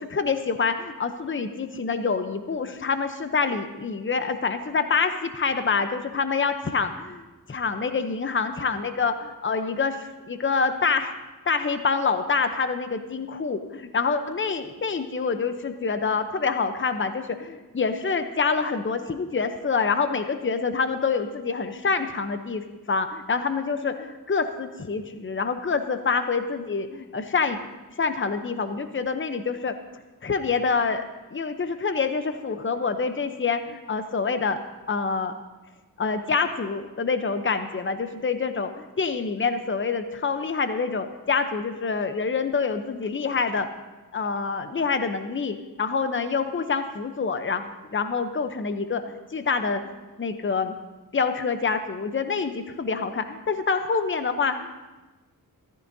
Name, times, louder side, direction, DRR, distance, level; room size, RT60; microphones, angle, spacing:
voice 1, 0.0-11.1 11.5-27.6 28.0-29.7 30.2-31.0 31.3-34.6 34.9-35.3 36.0-43.7 44.1-50.7 51.1-54.8, left 5 dB, 35° left, 9 dB, 0.8 m, -26 dB
14.5 x 13.0 x 2.7 m, 1.2 s
cardioid pair, 55°, 36 cm